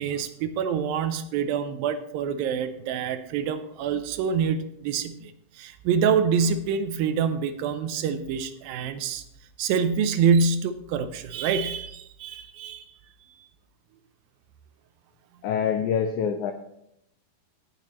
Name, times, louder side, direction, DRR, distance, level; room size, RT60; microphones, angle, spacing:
voice 1, 0.0-9.2 9.6-13.0, right 6 dB, 80° right, 10 dB, 2.3 m, -26 dB
voice 2, 15.4-16.5, left 7 dB, 90° left, 6 dB, 1.7 m, -25 dB
17.5 x 7.4 x 3.0 m, 0.77 s
omnidirectional pair, 4.4 m